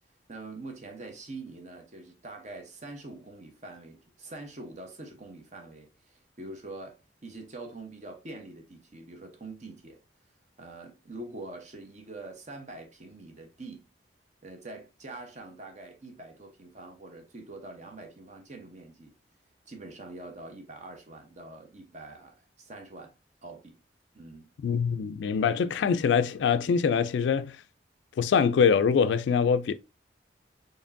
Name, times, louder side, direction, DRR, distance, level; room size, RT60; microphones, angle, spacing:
voice 1, 0.3-10.0 10.6-13.9 14.4-19.2 19.7-23.1 23.4-23.8 24.1-24.5, right 2 dB, 40° right, 0.9 m, -44 dB
voice 2, 24.6-27.6 28.2-29.7, left 6 dB, 85° left, 0.3 m, -24 dB
4.3 x 3.2 x 2.6 m
head